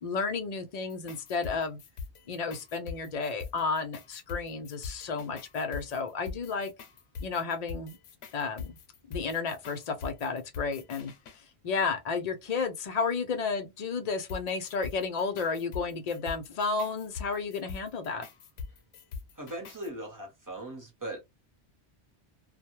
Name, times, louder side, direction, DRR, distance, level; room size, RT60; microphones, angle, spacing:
voice 1, 0.0-1.8 2.3-6.7 7.2-8.0 8.3-8.8 9.1-11.1 11.6-18.3, left 4 dB, 50° left, 0.5 m, -32 dB
sound 1, 0.8-11.4 14.3-19.9, left 5 dB, 80° left, 0.8 m, -43 dB
voice 2, 19.4-21.2, right 1 dB, 20° right, 0.8 m, -39 dB
2.1 x 2.1 x 2.9 m
omnidirectional pair, 1.1 m